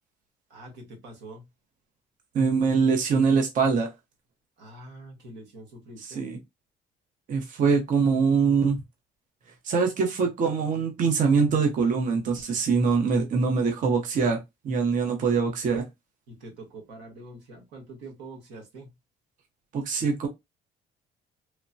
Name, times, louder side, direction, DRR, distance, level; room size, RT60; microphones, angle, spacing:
voice 1, 0.5-1.5 4.6-6.3 16.3-18.9, right 2 dB, 90° right, 1.3 m, -45 dB
voice 2, 2.3-3.9 6.0-6.4 7.3-8.8 9.6-14.4 14.6-15.8 19.7-20.3, right 5 dB, 50° right, 0.7 m, -23 dB
3.1 x 2.1 x 2.5 m
cardioid pair, 110°, 17 cm